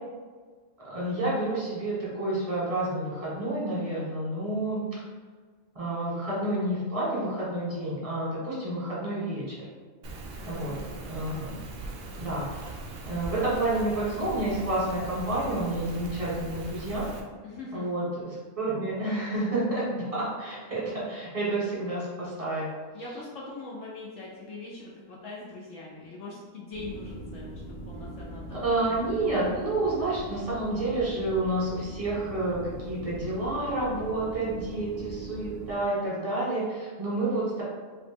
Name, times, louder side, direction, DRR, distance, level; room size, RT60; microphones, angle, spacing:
voice 1, 0.8-4.8 5.7-9.6 10.5-10.8 11.0-11.5 12.2-12.8 13.0-17.1 17.7-22.7 28.5-37.6, right 2 dB, 25° right, -7 dB, 1.2 m, -29 dB
Rain, 10.0-17.2, right 2 dB, 65° right, 0.6 m, -40 dB
voice 2, 10.4-11.1 17.4-17.9 22.9-28.8, left 3 dB, 65° left, -4 dB, 0.9 m, -42 dB
sound 1, 26.7-35.8, right 1 dB, 35° left, 0.8 m, -41 dB
2.9 x 2.9 x 3.4 m, 1.5 s
omnidirectional pair, 1.5 m